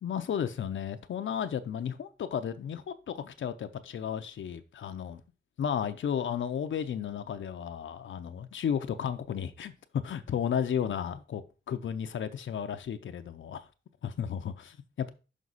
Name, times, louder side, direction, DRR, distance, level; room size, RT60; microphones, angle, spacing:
voice 1, 0.0-5.2 5.6-13.7 14.0-15.1, left 8 dB, 80° left, 0.6 m, -33 dB
6.2 x 5.2 x 4.0 m
wide cardioid pair, 125°, 19 cm